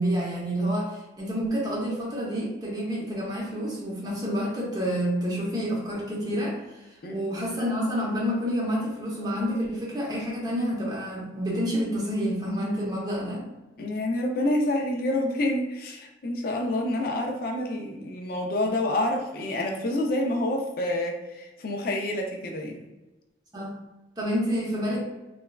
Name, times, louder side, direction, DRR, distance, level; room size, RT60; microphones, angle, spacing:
voice 1, 0.0-13.4 23.5-23.8 24.2-25.0, equal, 20° right, -4 dB, 0.7 m, -28 dB
voice 2, 13.8-22.8, left 1 dB, 50° left, 2 dB, 0.4 m, -28 dB
3.2 x 2.2 x 2.2 m, 1.0 s
head